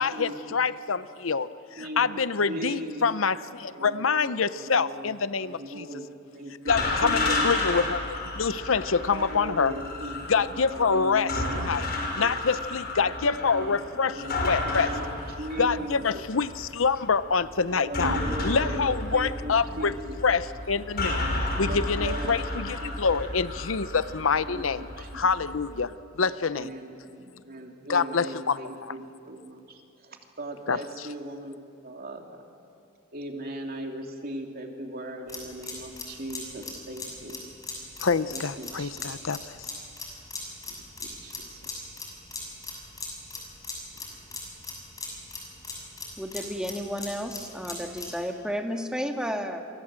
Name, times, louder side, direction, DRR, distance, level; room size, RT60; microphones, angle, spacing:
voice 1, 0.0-5.8 6.7-8.0 8.4-9.7 10.3-11.3 11.7-11.9 12.2-14.9 15.6-18.2 18.4-19.9 20.2-20.4 20.7-21.2 21.6-24.9 25.1-26.7 27.9-28.6 30.7-30.8 38.0-39.7, left 5 dB, 85° left, 14 dB, 0.8 m, -26 dB
voice 2, 1.8-3.1 3.6-7.7 9.1-10.3 10.6-12.3 13.2-16.2 17.7-20.2 21.5-22.9 23.3-23.4 24.4-25.5 26.2-32.4 33.1-37.5 38.3-39.5 40.7-42.0 43.9-44.4, right 1 dB, 50° right, 2 dB, 2.9 m, -39 dB
sound 1, 6.7-25.7, left 2 dB, 55° left, 5.7 m, -32 dB
sound 2, 35.3-48.2, left 3 dB, 20° left, 6.7 m, -39 dB
voice 3, 46.2-49.6, equal, 5° right, 3 dB, 1.8 m, -32 dB
28.5 x 24.5 x 7.6 m, 2.6 s
head